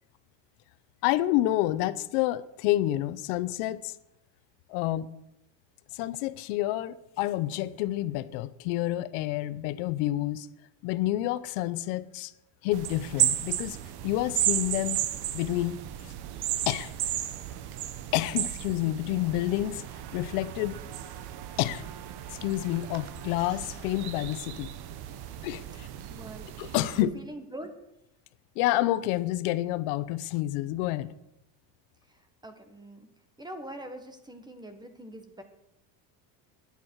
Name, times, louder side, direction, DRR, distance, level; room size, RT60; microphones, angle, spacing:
voice 1, 1.0-3.9 4.7-5.1 5.9-10.5 10.8-12.3 12.6-13.8 14.0-15.0 15.3-15.8 16.7-16.9 18.1-19.8 20.1-20.8 21.6-21.9 22.3-24.7 25.4-25.9 26.6-27.1 28.6-31.1, left 15 dB, 80° left, 15 dB, 0.8 m, -29 dB
sound 1, 12.7-27.0, right 12 dB, 50° right, 1.1 m, -34 dB
voice 2, 26.1-26.5 26.9-27.7 32.1-33.1 33.4-35.4, right 1 dB, 10° right, 7 dB, 1.4 m, -43 dB
20.5 x 8.4 x 4.7 m, 0.87 s
cardioid pair, 145°, 48 cm